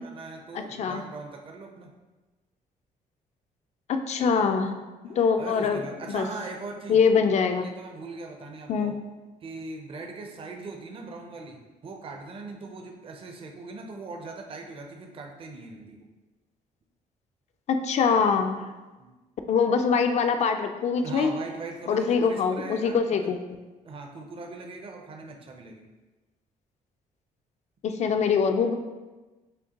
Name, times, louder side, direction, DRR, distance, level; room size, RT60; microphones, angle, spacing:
voice 1, 0.0-1.9 5.1-7.1 7.6-8.9 9.4-16.1 19.0-19.1 21.0-23.3 23.8-25.9, right 3 dB, 35° right, 3 dB, 0.5 m, -40 dB
voice 2, 0.5-1.0 3.9-4.8 5.0-5.8 6.1-6.3 6.9-7.7 8.7-8.9 17.7-18.6 19.5-21.3 21.9-23.4 27.8-28.7, left 5 dB, 45° left, 7 dB, 0.4 m, -23 dB
5.1 x 2.1 x 2.8 m, 1.2 s
cardioid pair, 100°, 15 cm